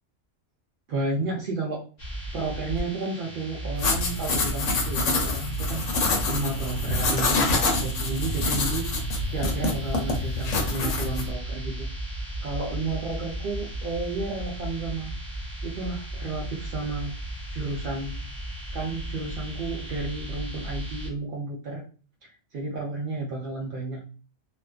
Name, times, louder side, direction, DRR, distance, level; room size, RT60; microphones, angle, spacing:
voice 1, 0.9-1.8 2.3-8.9 9.3-11.9 12.4-15.1 15.6-17.1 17.5-18.2 18.7-21.8 22.5-24.0, right 3 dB, 65° right, -2 dB, 0.5 m, -32 dB
sound 1, 2.0-21.1, right 1 dB, 30° left, 0.7 m, -35 dB
sound 2, 3.8-11.3, left 2 dB, 75° left, 1.0 m, -26 dB
2.4 x 2.2 x 2.3 m, 0.38 s
omnidirectional pair, 1.4 m